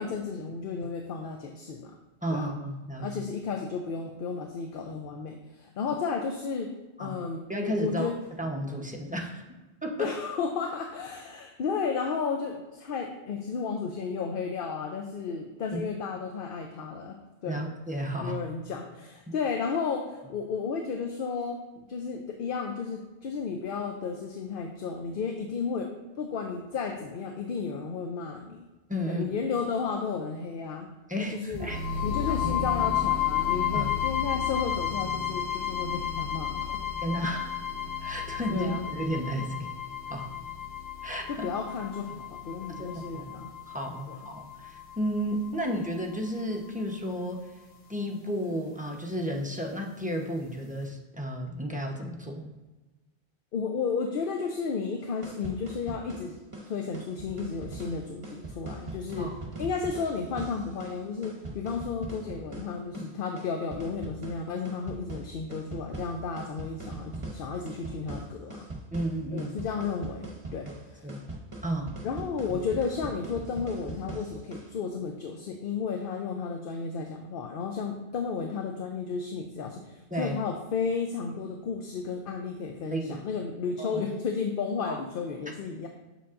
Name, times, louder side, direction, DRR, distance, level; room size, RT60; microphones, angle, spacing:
voice 1, 0.0-1.9 2.3-2.5 3.0-6.7 7.0-8.2 10.0-17.6 18.2-25.9 26.2-28.7 29.1-30.9 31.2-31.7 32.0-36.8 38.5-38.8 41.3-43.5 44.1-44.2 53.5-56.4 56.7-68.7 69.3-71.1 72.0-85.9, left 5 dB, 60° left, 4 dB, 0.7 m, -33 dB
voice 2, 2.2-3.1 7.0-7.2 7.5-8.1 8.4-9.4 9.8-10.1 15.7-15.8 17.4-18.4 19.3-19.4 28.9-29.3 31.1-31.8 32.3-32.5 33.7-33.9 37.0-37.5 38.0-39.7 40.1-40.3 41.0-41.5 42.8-43.3 43.7-47.4 47.9-52.5 59.2-59.4 62.9-63.1 68.9-69.5 71.0-71.2 71.6-71.9 80.1-80.4 82.9-83.2 83.8-84.0 84.9-85.0, equal, 10° right, -1 dB, 0.7 m, -32 dB
sound 1, 31.6-45.6, left 9 dB, 35° left, 1.1 m, -32 dB
sound 2, 55.0-74.7, right 2 dB, 30° right, 1.0 m, -41 dB
7.0 x 7.0 x 2.5 m, 1.2 s
omnidirectional pair, 1.1 m